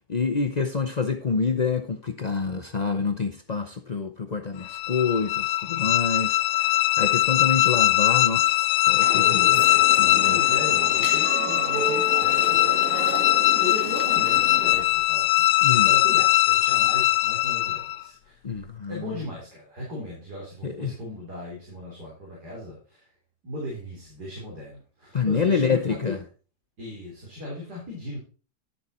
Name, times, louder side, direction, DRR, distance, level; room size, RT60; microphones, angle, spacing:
voice 1, 0.1-6.4 7.0-9.6 10.0-10.4 15.6-15.9 18.4-19.1 20.6-20.9 25.1-26.2, left 5 dB, 45° left, 0.5 m, -27 dB
sound 1, 4.6-18.0, left 16 dB, 80° left, 1.1 m, -21 dB
voice 2, 5.8-6.3 9.5-13.1 13.6-18.4 18.9-23.1 23.4-26.2 26.8-28.2, left 1 dB, 70° right, 4.1 m, -37 dB
sound 2, 9.0-14.8, right 4 dB, 55° right, 1.6 m, -33 dB
11.0 x 7.0 x 4.2 m
omnidirectional pair, 1.7 m